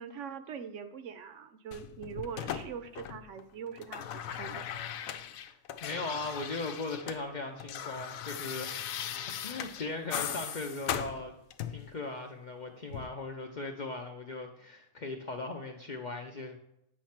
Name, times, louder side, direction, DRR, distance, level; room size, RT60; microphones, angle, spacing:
voice 1, 0.0-4.9, right 7 dB, 70° right, 9 dB, 0.9 m, -43 dB
sound 1, 1.7-3.4 3.7-7.2 7.5-11.9 12.9-13.1, left 9 dB, 90° left, 1.0 m, -38 dB
voice 2, 5.8-8.9 9.4-11.3 11.7-16.6, left 3 dB, 50° left, 3 dB, 0.6 m, -38 dB
8.4 x 3.1 x 5.8 m, 0.82 s
omnidirectional pair, 1.4 m